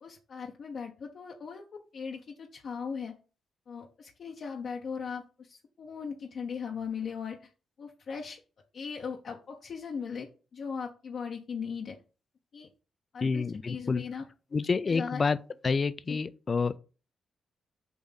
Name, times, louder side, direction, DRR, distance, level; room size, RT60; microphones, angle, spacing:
voice 1, 0.0-3.2 3.7-7.5 7.8-8.4 8.7-12.0 12.5-12.7 13.1-14.2 14.9-15.2 16.1-16.2, left 6 dB, 60° left, 0.8 m, -38 dB
voice 2, 13.2-14.0 14.5-15.4 15.6-16.8, left 4 dB, 35° left, 0.4 m, -28 dB
7.0 x 2.6 x 5.6 m
cardioid pair, 95°, 0 cm